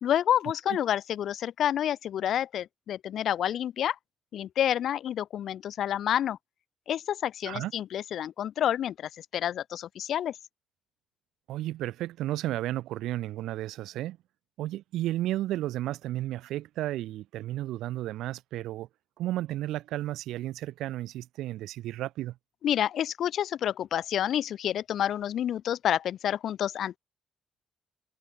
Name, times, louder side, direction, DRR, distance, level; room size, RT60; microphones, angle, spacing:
voice 1, 0.0-3.9 4.3-6.4 6.9-10.3 22.6-27.0, left 10 dB, 70° left, 1.4 m, -29 dB
voice 2, 11.5-14.2 14.6-18.9 19.2-22.4, right 14 dB, 85° right, 7.2 m, -33 dB
cardioid pair, 90°, 0 cm